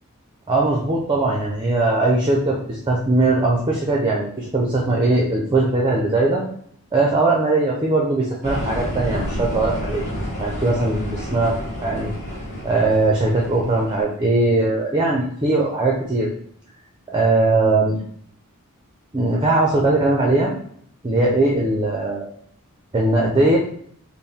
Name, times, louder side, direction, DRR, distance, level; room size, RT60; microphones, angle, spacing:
voice 1, 0.5-6.4 6.9-10.1 10.4-11.6 11.8-12.1 12.6-16.3 17.1-18.0 19.1-20.6 21.0-22.3 22.9-23.6, right 2 dB, 20° right, -1 dB, 0.5 m, -20 dB
sound 1, 8.4-14.0, equal, 30° left, 1.2 m, -29 dB
4.3 x 2.1 x 3.5 m, 0.64 s
head